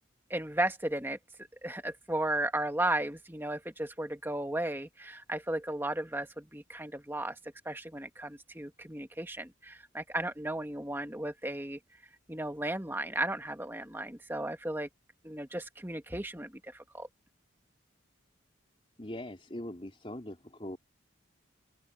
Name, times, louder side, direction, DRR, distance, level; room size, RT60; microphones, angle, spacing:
voice 1, 0.3-1.2 1.6-7.4 7.6-11.8 12.3-14.9 15.2-17.1, right 1 dB, 10° right, 1.6 m, -35 dB
voice 2, 19.0-20.8, left 1 dB, 30° left, 4.0 m, -41 dB
open air
head